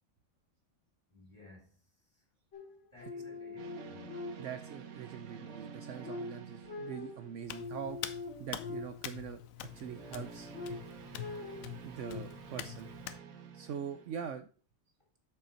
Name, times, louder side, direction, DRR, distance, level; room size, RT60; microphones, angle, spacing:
voice 1, 1.1-2.3 2.6-4.3, left 3 dB, 20° left, 3.3 m, -57 dB
sound 1, 2.5-4.8 5.2-9.2 9.7-12.2, left 3 dB, 55° left, 2.3 m, -45 dB
sound 2, 3.6-8.0 9.6-14.4, right 7 dB, 90° right, 1.3 m, -50 dB
voice 2, 4.4-8.1 8.4-10.5 11.8-12.9 13.5-14.5, right 8 dB, 65° right, 0.9 m, -43 dB
Hands, 7.4-13.2, left 12 dB, 80° left, 1.0 m, -45 dB
7.1 x 5.6 x 4.2 m
omnidirectional pair, 1.4 m